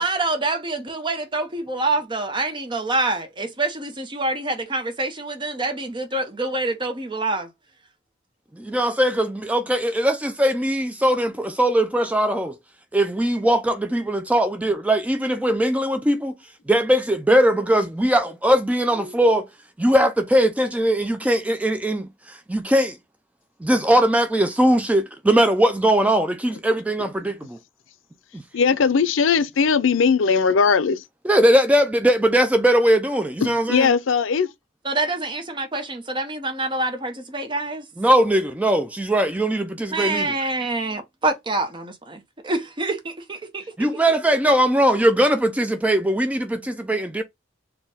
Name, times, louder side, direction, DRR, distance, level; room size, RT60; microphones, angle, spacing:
voice 1, 0.0-7.5 19.0-19.2 34.8-37.8 39.9-43.9, right 2 dB, 25° right, 0.8 m, -26 dB
voice 2, 8.6-12.6 12.9-16.3 16.7-19.5 19.8-23.0 23.6-27.6 28.3-28.4 31.3-33.9 38.0-40.3 43.8-47.2, right 1 dB, 5° right, 0.3 m, -20 dB
voice 3, 28.5-31.0 33.4-34.5, left 5 dB, 85° left, 0.5 m, -19 dB
4.2 x 2.2 x 3.4 m
head